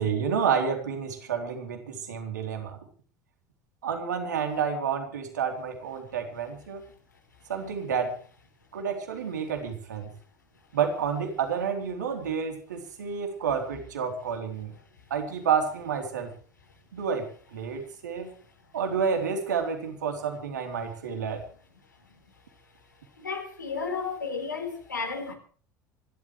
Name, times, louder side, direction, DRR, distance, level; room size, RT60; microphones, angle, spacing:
voice 1, 0.0-2.8 3.8-6.8 7.5-8.1 8.7-10.1 10.7-14.7 15.1-16.3 16.9-18.3 18.7-21.4, right 6 dB, 75° right, 3.7 m, -29 dB
voice 2, 23.1-25.3, left 5 dB, 80° left, 4.2 m, -33 dB
26.0 x 12.5 x 3.3 m
figure-of-eight pair, 65°, 10 cm